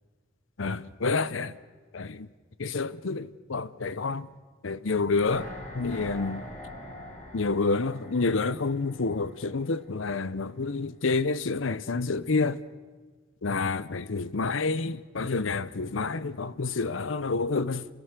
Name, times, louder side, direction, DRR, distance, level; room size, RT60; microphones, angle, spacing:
voice 1, 0.6-1.6 1.9-2.3 2.6-4.3 4.6-5.5 5.7-6.5 7.3-12.6 13.4-17.9, left 3 dB, 70° left, 0.7 m, -28 dB
sound 1, 5.0-10.1 10.4-10.5, left 1 dB, 40° left, 5.9 m, -43 dB
27.5 x 19.5 x 6.7 m
head